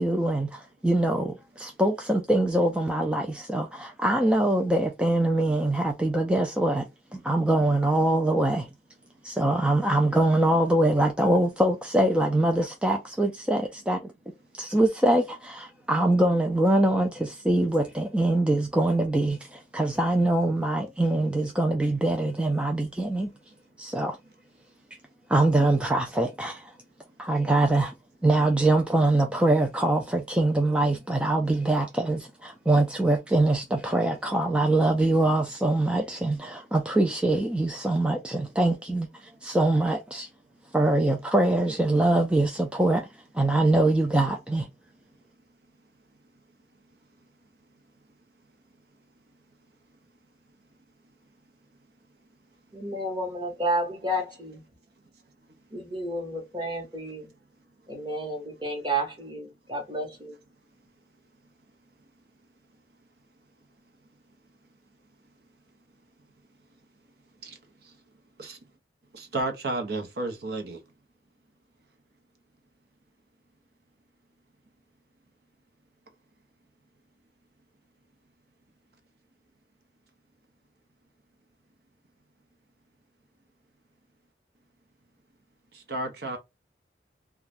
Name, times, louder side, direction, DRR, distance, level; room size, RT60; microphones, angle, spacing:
voice 1, 0.0-6.9 7.1-8.7 9.2-14.1 14.5-23.3 23.8-24.2 25.3-26.7 27.2-27.9 28.2-40.3 40.7-43.1 43.3-44.7, right 1 dB, 5° right, 0.3 m, -23 dB
voice 2, 52.7-54.6 55.7-57.3 57.9-60.4, right 1 dB, 25° right, 1.0 m, -31 dB
voice 3, 69.1-70.8 85.9-86.4, right 2 dB, 60° right, 0.7 m, -31 dB
2.5 x 2.3 x 3.3 m
head